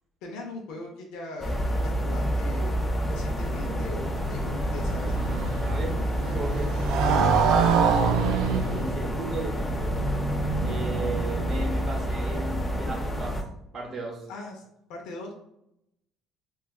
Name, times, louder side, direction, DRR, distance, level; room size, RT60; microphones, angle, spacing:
voice 1, 0.2-5.2 14.3-14.6 14.9-15.3, left 2 dB, 85° left, 1 dB, 0.6 m, -40 dB
sound 1, 1.4-13.4, equal, 10° left, 0.5 m, -28 dB
Motorcycle, 3.7-11.9, right 5 dB, 80° right, 0.3 m, -27 dB
voice 2, 5.6-7.9 8.5-10.0 10.6-13.4 13.7-14.3, right 2 dB, 40° right, -2 dB, 0.7 m, -36 dB
4.5 x 2.3 x 2.3 m, 0.80 s
cardioid pair, 125°, 0 cm